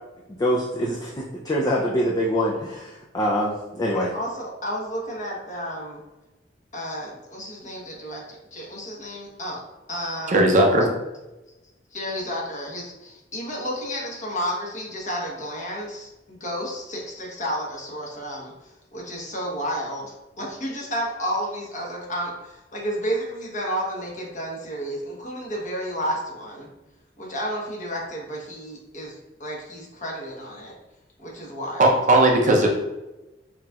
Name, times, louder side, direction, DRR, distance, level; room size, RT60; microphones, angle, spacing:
voice 1, 0.4-4.1, equal, 20° left, -3 dB, 0.4 m, -24 dB
voice 2, 3.9-6.0 6.7-9.6 9.9-10.4 11.9-26.7 27.2-30.7 31.2-32.0, equal, 40° left, -2 dB, 1.1 m, -31 dB
voice 3, 10.3-10.9 31.8-32.7, right 1 dB, 40° right, 1 dB, 0.6 m, -17 dB
5.7 x 2.8 x 2.4 m, 1.0 s
head